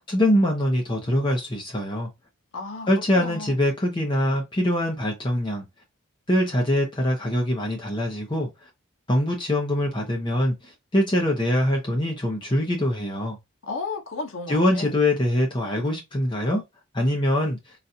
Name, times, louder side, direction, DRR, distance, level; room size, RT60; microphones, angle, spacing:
voice 1, 0.1-2.1 2.9-5.6 6.3-8.5 9.1-13.4 14.5-16.6 16.9-17.6, left 1 dB, 20° left, 0.7 m, -23 dB
voice 2, 2.5-3.6 13.6-14.9, left 3 dB, 70° left, 0.8 m, -34 dB
4.0 x 2.3 x 2.7 m
head